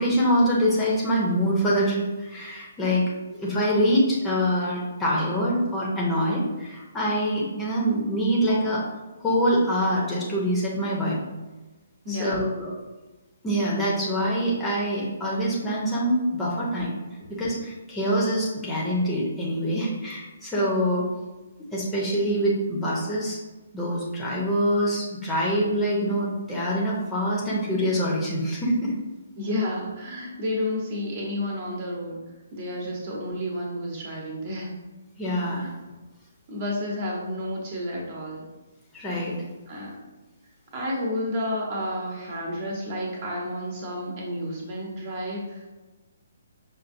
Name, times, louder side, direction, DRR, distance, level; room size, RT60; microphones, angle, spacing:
voice 1, 0.0-8.8 9.2-11.2 12.1-12.7 13.4-16.9 17.3-21.1 21.7-23.4 23.7-28.9 35.2-35.7 38.9-39.4, equal, 10° left, -5 dB, 0.8 m, -25 dB
voice 2, 12.0-12.5 17.2-17.3 29.4-32.2 32.5-34.7 35.5-35.7 36.5-38.4 39.7-39.9 40.7-45.7, left 1 dB, 35° right, -2 dB, 1.0 m, -31 dB
5.9 x 2.5 x 2.6 m, 1.2 s
figure-of-eight pair, 130°, 0 cm